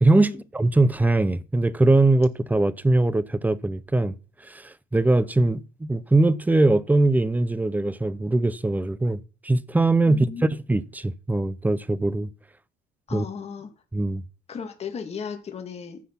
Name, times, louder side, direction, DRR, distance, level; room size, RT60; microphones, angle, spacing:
voice 1, 0.0-4.1 4.4-10.3 10.7-12.3 13.1-13.2 13.9-14.2, right 2 dB, 10° right, 0.7 m, -21 dB
voice 2, 10.1-10.5 13.1-13.7 14.5-16.0, left 6 dB, 40° left, 2.3 m, -35 dB
15.0 x 6.2 x 5.9 m
cardioid pair, 110°, 17 cm